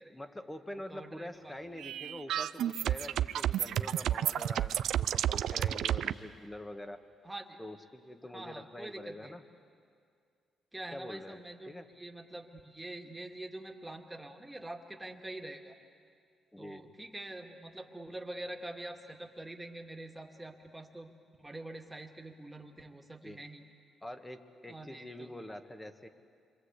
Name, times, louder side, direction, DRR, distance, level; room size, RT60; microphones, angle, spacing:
voice 1, 0.1-7.0 7.6-9.4 10.9-11.4 11.7-11.9 16.5-16.9 23.2-23.4 24.0-26.1, left 1 dB, 10° left, 7 dB, 1.7 m, -45 dB
voice 2, 0.7-1.6 7.2-7.6 8.2-9.4 10.7-15.8 16.6-21.1 21.4-23.6 24.7-25.4, right 1 dB, 10° right, 2 dB, 2.3 m, -45 dB
sound 1, 1.8-6.1, right 11 dB, 75° right, 0.6 m, -31 dB
27.0 x 25.0 x 8.3 m, 2.3 s
cardioid pair, 90°, 0 cm